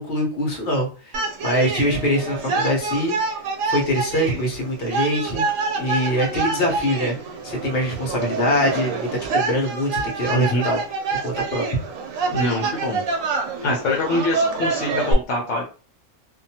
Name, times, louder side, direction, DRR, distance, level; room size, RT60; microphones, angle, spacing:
voice 1, 0.0-3.2 3.7-5.4 5.8-7.1 7.4-10.8 11.2-11.7, equal, 50° left, -1 dB, 1.1 m, -23 dB
sound 1, 1.1-15.1, right 4 dB, 85° right, 1.0 m, -27 dB
voice 2, 10.3-10.6 12.3-13.0 13.6-15.6, left 1 dB, 70° left, -3 dB, 1.0 m, -24 dB
2.7 x 2.2 x 2.8 m, 0.36 s
omnidirectional pair, 1.4 m